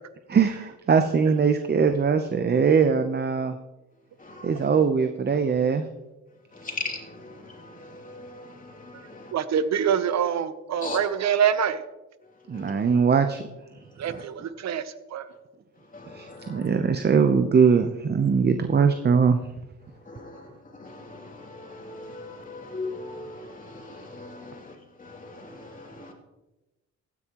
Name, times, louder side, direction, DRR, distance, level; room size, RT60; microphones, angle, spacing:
voice 1, 0.3-3.6 4.4-5.8 12.5-13.4 14.1-14.2 16.1-19.4, right 6 dB, 35° right, 0.8 m, -21 dB
voice 2, 6.6-9.3 10.8-11.0 12.5-12.7 14.1-14.3 15.9-16.7 20.1-20.4 20.7-24.7 25.0-26.1, left 3 dB, 25° left, 3.0 m, -39 dB
voice 3, 9.3-11.8 14.0-14.8 15.1-15.2, right 8 dB, 65° right, 0.9 m, -25 dB
15.5 x 10.0 x 3.0 m
cardioid pair, 90°, 30 cm